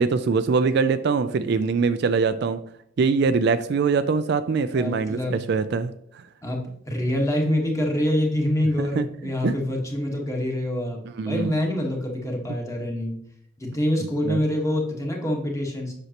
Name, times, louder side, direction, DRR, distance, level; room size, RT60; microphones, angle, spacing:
voice 1, 0.0-2.6 3.0-5.9 8.8-9.1 9.4-9.5 11.2-11.5 14.2-14.4, right 4 dB, 55° right, 11 dB, 0.3 m, -23 dB
voice 2, 4.7-5.4 6.4-11.0 11.2-13.2 13.6-15.9, left 1 dB, 15° left, 0 dB, 1.4 m, -25 dB
8.0 x 6.1 x 2.9 m, 0.74 s
head